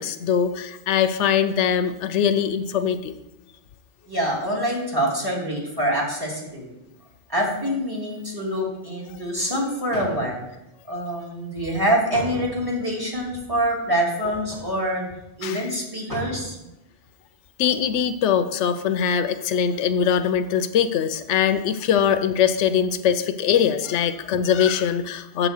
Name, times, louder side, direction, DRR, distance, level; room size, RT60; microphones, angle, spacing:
voice 1, 0.0-3.1 15.4-15.6 17.6-25.5, left 8 dB, 85° left, 10 dB, 0.9 m, -22 dB
voice 2, 4.1-6.7 7.3-10.4 10.9-15.0 15.4-16.6, equal, 20° right, -3 dB, 1.9 m, -25 dB
sound 1, 9.5-9.6 9.9-10.6 12.1-12.8 14.2-14.7 15.2-15.3 15.5-15.6 16.1-16.6 17.0-17.1, equal, 45° right, 2.6 m, -36 dB
7.5 x 4.0 x 6.4 m, 0.90 s
omnidirectional pair, 1.2 m